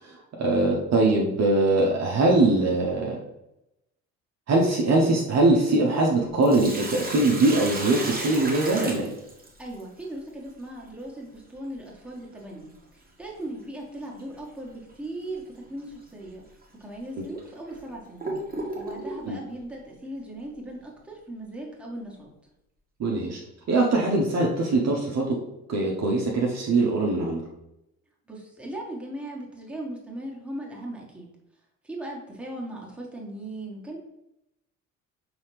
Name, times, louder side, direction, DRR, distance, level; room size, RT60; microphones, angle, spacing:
voice 1, 0.0-3.2 4.5-9.1 17.2-17.3 19.2-19.4 23.0-23.4 23.7-25.4 25.7-27.4, right 2 dB, 40° right, -2 dB, 0.9 m, -22 dB
Sink (filling or washing), 6.2-9.8 12.2-12.3 14.2-14.4 14.9-15.0 15.8-15.9 16.6-16.7 17.4-19.3, right 2 dB, 20° right, 1.1 m, -34 dB
voice 2, 9.6-16.4 16.8-18.3 18.7-22.3 28.3-31.3 31.8-34.0, right 1 dB, 5° right, -3 dB, 1.5 m, -38 dB
5.5 x 2.9 x 3.2 m, 0.87 s
figure-of-eight pair, 50°, 41 cm